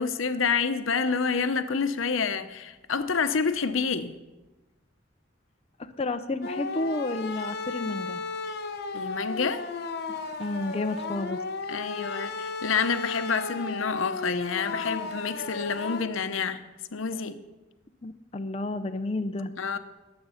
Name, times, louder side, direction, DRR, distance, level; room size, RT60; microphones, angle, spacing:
voice 1, 0.0-4.1 8.9-9.7 11.7-16.6 16.9-17.4 19.6-19.8, left 5 dB, 80° left, 0.8 m, -28 dB
voice 2, 5.8-8.2 10.4-11.4 18.0-19.5, left 2 dB, 30° left, 0.6 m, -31 dB
sound 1, 6.4-16.0, left 3 dB, 55° left, 1.0 m, -34 dB
21.0 x 8.0 x 5.7 m
head